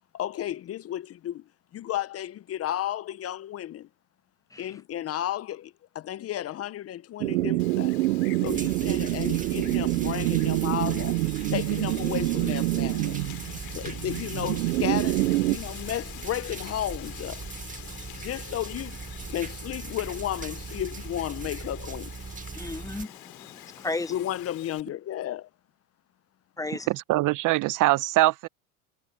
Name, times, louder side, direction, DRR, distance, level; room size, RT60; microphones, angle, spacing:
voice 1, 0.1-1.4 1.7-3.9 4.6-7.9 8.4-11.2 11.5-13.2 13.7-17.4 18.2-19.0 19.3-22.1 24.1-25.5, left 12 dB, 35° left, 0.9 m, -33 dB
sound 1, 7.2-15.6, right 19 dB, 80° right, 0.7 m, -26 dB
Wind, 7.6-24.8, left 17 dB, 55° left, 3.9 m, -46 dB
sound 2, 8.5-23.1, right 5 dB, 20° right, 1.9 m, -39 dB
voice 2, 22.5-24.1 26.6-26.9, left 2 dB, 10° left, 1.1 m, -34 dB
voice 3, 26.9-28.5, right 18 dB, 45° right, 0.8 m, -23 dB
hypercardioid pair, 100°, 43 cm